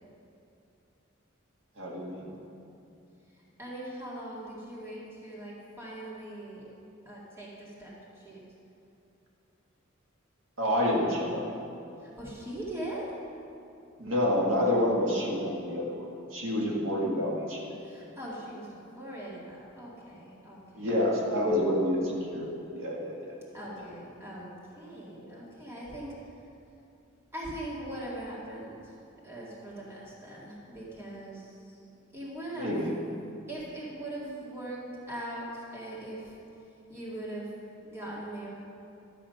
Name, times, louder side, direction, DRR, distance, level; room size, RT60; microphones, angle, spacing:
voice 1, 1.8-2.3 10.6-11.5 14.0-17.8 20.7-23.4 32.6-33.0, left 1 dB, 70° right, -3 dB, 1.8 m, -28 dB
voice 2, 3.4-6.7 7.1-8.4 12.0-13.1 17.8-21.0 23.5-26.1 27.3-28.8 29.2-31.8 32.1-32.8 33.5-34.8 35.1-36.3 36.9-37.5 37.8-38.5, right 1 dB, 10° right, -6 dB, 2.2 m, -41 dB
12.5 x 7.5 x 5.7 m, 2.7 s
head